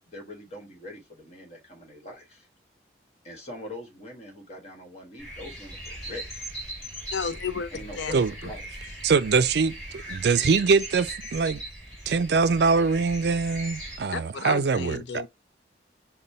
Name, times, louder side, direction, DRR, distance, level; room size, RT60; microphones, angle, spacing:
voice 1, 0.1-2.5 3.2-6.2 7.7-8.6, left 1 dB, 35° left, 1.4 m, -42 dB
sound 1, 5.2-14.0, right 1 dB, 5° left, 2.3 m, -39 dB
voice 2, 7.1-8.1 8.4-8.5 14.1-15.3, left 6 dB, 75° left, 0.5 m, -32 dB
voice 3, 9.0-11.6 12.1-15.2, right 4 dB, 60° right, 0.4 m, -23 dB
5.3 x 2.2 x 4.1 m
head